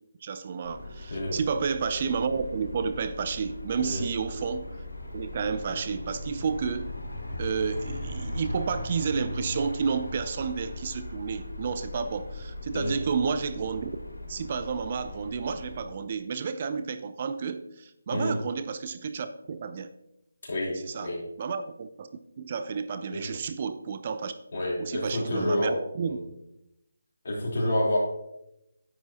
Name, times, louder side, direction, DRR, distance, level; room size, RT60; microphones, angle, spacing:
voice 1, 0.2-4.7 5.1-6.9 7.4-13.9 14.3-19.9 20.8-21.1 21.4-22.1 22.4-24.3 24.8-26.2, right 5 dB, 40° right, 11 dB, 0.5 m, -31 dB
sound 1, 0.6-15.8, left 1 dB, 75° left, 3.0 m, -38 dB
voice 2, 20.4-21.2 23.1-23.3 24.5-25.8 26.0-26.2 27.2-28.0, left 1 dB, 50° left, -4 dB, 3.6 m, -28 dB
9.9 x 8.0 x 2.9 m, 0.86 s
figure-of-eight pair, 155°, 0 cm